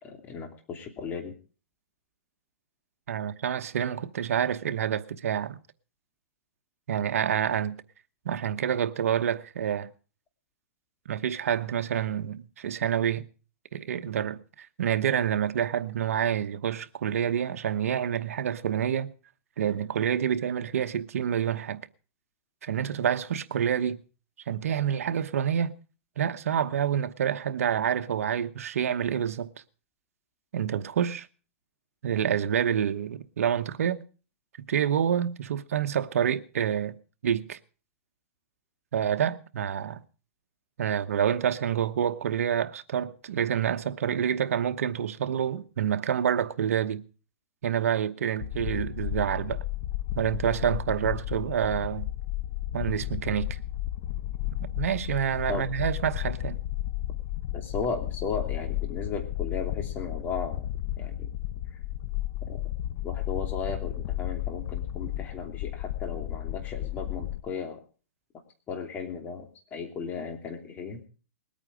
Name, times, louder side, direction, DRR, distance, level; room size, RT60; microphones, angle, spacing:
voice 1, 0.0-1.3 55.5-55.7 57.5-60.7 61.0-61.3 62.5-62.6 63.0-67.8 68.7-69.4 69.7-71.0, left 5 dB, 25° left, 2.8 m, -35 dB
voice 2, 3.1-5.6 6.9-7.8 8.2-9.9 11.1-13.3 13.7-19.1 19.6-21.8 22.6-24.0 24.5-25.7 26.2-29.5 30.5-31.3 32.0-34.0 34.7-37.0 37.2-37.6 38.9-40.0 40.8-47.0 47.6-49.6 50.1-52.1 52.7-53.6 54.6-56.6, right 9 dB, 75° right, 1.0 m, -28 dB
sound 1, 48.4-67.4, left 13 dB, 45° left, 1.1 m, -33 dB
20.5 x 8.9 x 4.9 m
hypercardioid pair, 140°, 8 cm